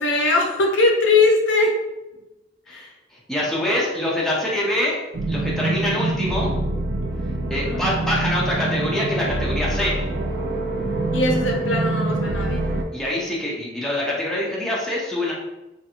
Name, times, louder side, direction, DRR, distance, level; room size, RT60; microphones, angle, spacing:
voice 1, 0.0-1.8 2.7-2.9 7.5-7.8 11.1-12.6, left 3 dB, 75° left, 0 dB, 0.7 m, -20 dB
voice 2, 3.1-5.0 5.3-6.5 7.5-10.0 12.9-15.3, left 1 dB, 5° left, -5 dB, 0.7 m, -24 dB
sound 1, 5.1-12.8, right 2 dB, 60° right, 0.5 m, -25 dB
3.6 x 2.5 x 2.9 m, 1.0 s
head